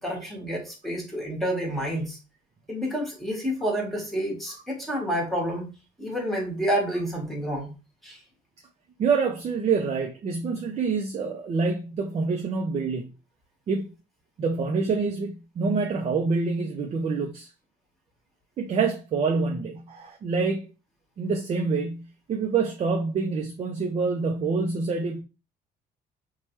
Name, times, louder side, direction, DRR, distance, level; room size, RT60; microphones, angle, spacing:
voice 1, 0.0-2.2 2.7-5.7 6.0-7.7 8.0-8.2, equal, ahead, 1.1 m, -29 dB
voice 2, 9.0-13.1 13.7-13.9 14.4-17.5 18.6-20.7 21.2-25.2, right 4 dB, 40° right, 0.5 m, -26 dB
3.1 x 2.2 x 3.0 m
cardioid pair, 110°, 17 cm